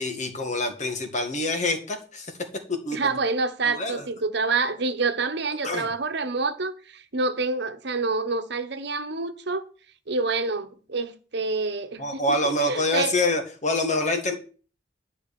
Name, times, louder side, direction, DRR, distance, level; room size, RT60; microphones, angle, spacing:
voice 1, 0.0-2.3 2.7-3.2 3.6-4.1 5.6-5.9 12.0-14.3, left 2 dB, 40° left, 1.9 m, -26 dB
voice 2, 2.9-9.6 10.1-13.1, right 3 dB, 65° right, 1.1 m, -27 dB
11.5 x 4.9 x 7.0 m
head